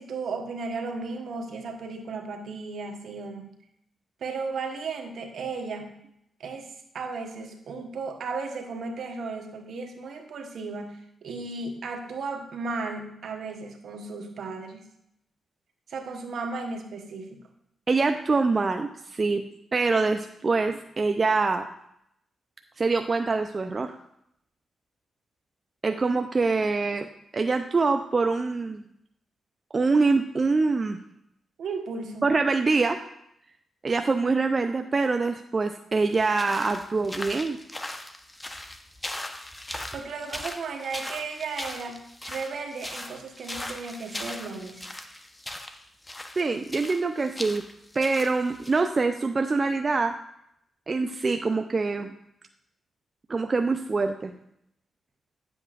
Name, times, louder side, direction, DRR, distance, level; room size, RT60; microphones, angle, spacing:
voice 1, 0.0-3.5 4.2-6.0 6.4-14.9 15.9-17.4 31.6-32.3 39.9-45.0, right 4 dB, 70° right, 4 dB, 1.1 m, -35 dB
voice 2, 17.9-19.4 19.7-21.7 22.8-24.0 25.8-27.1 27.3-28.9 29.7-31.0 32.2-33.0 33.8-37.6 46.4-47.7 48.0-50.2 50.9-52.1 53.3-54.3, right 3 dB, 40° right, 6 dB, 0.4 m, -24 dB
sound 1, 36.1-48.9, left 1 dB, 20° left, 0.9 m, -39 dB
9.8 x 7.8 x 2.5 m, 0.76 s
supercardioid pair, 60°, 0 cm